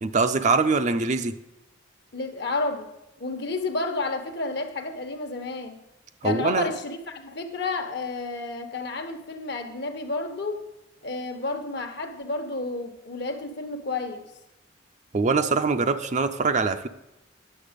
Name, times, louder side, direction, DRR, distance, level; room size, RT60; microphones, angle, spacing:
voice 1, 0.0-1.3 6.2-6.7 15.1-16.9, right 4 dB, 40° right, 9 dB, 0.5 m, -23 dB
voice 2, 2.1-2.9 3.2-5.8 6.2-10.6 11.0-14.3, left 3 dB, 60° left, 6 dB, 1.1 m, -31 dB
10.0 x 7.1 x 5.1 m, 0.92 s
head